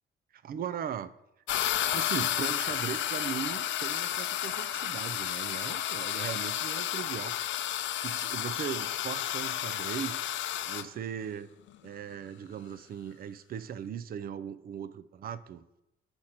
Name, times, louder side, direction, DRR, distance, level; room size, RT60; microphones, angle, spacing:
voice 1, 0.3-1.1 1.9-7.4 8.0-10.2 10.7-11.5 11.8-15.6, right 8 dB, 50° right, 13 dB, 0.4 m, -38 dB
sound 1, 1.5-10.9, left 11 dB, 70° left, 0.5 m, -32 dB
6.4 x 4.3 x 5.7 m, 0.90 s
cardioid pair, 90°, 20 cm